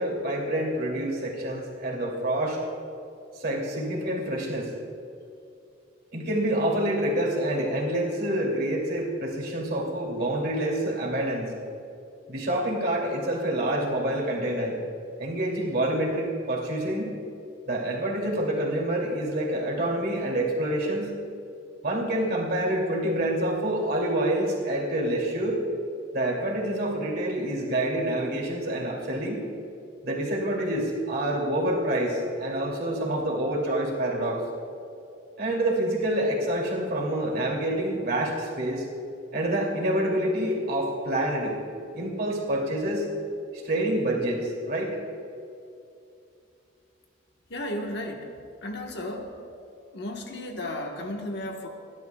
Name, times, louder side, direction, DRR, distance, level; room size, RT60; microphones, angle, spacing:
voice 1, 0.0-2.6 3.3-4.7 6.1-11.5 12.3-14.8 15.2-17.1 17.7-21.1 21.8-25.6 26.1-29.4 30.0-34.4 35.4-38.8 39.3-41.6 41.9-43.1 43.6-45.0, right 1 dB, 50° right, -2 dB, 2.8 m, -27 dB
voice 2, 47.5-48.3 48.6-49.4 49.9-51.7, left 1 dB, 55° left, 2 dB, 1.4 m, -34 dB
29.5 x 12.0 x 2.4 m, 2.6 s
head